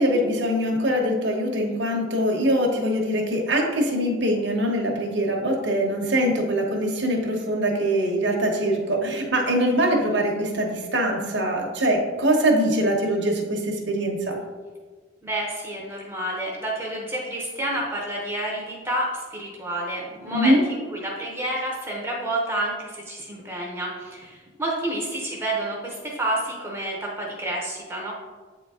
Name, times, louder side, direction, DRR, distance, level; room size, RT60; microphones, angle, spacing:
voice 1, 0.0-14.4 20.3-20.6, equal, 70° right, 1 dB, 1.1 m, -23 dB
voice 2, 15.2-28.1, right 1 dB, 15° right, -2 dB, 0.8 m, -29 dB
8.2 x 3.9 x 3.6 m, 1.4 s
head